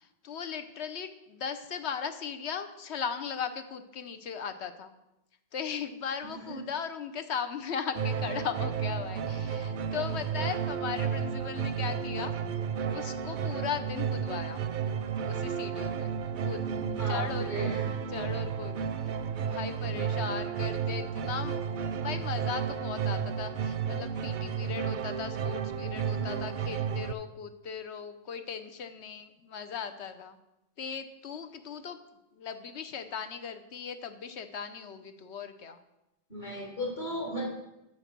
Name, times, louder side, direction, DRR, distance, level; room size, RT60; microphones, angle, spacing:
voice 1, 0.2-4.9 5.5-12.3 12.9-14.6 15.2-16.1 16.4-16.6 17.1-17.7 18.1-18.7 19.4-21.6 22.0-30.4 30.8-32.0 32.4-35.8, left 7 dB, 75° left, 9 dB, 1.0 m, -37 dB
voice 2, 6.2-6.6 16.7-17.8 26.2-26.5 36.3-37.5, right 1 dB, 45° left, -3 dB, 3.2 m, -36 dB
sound 1, 7.9-27.1, right 7 dB, 55° right, 0.6 m, -32 dB
8.7 x 6.7 x 6.0 m, 0.92 s
omnidirectional pair, 1.2 m